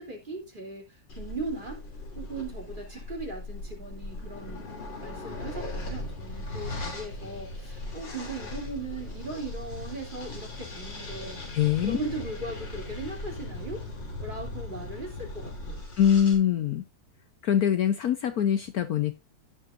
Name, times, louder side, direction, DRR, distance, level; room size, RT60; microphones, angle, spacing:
voice 1, 0.0-1.8 2.1-4.7 5.0-11.4 11.8-13.9 14.2-15.8, right 2 dB, 25° right, 3.1 m, -38 dB
sound 1, 1.1-16.4, left 2 dB, 90° left, 3.6 m, -38 dB
voice 2, 11.5-12.0 16.0-16.8 17.4-19.1, left 9 dB, 60° left, 1.2 m, -23 dB
16.0 x 6.4 x 2.6 m
omnidirectional pair, 1.9 m